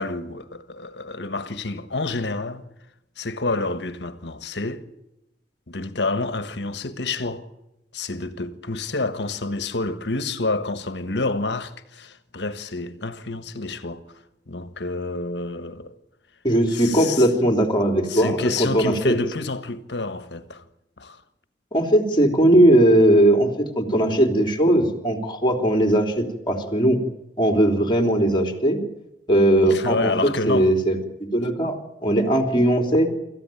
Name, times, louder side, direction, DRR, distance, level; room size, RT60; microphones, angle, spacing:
voice 1, 0.0-2.6 3.2-4.9 5.7-7.5 7.9-14.0 14.5-15.9 16.7-17.3 18.1-20.6 21.0-21.2 29.7-30.7, left 3 dB, 75° left, 1.5 m, -28 dB
voice 2, 16.4-19.1 21.7-27.0 27.4-28.8 29.3-33.1, right 1 dB, 25° left, 3.3 m, -19 dB
26.0 x 14.5 x 9.2 m
head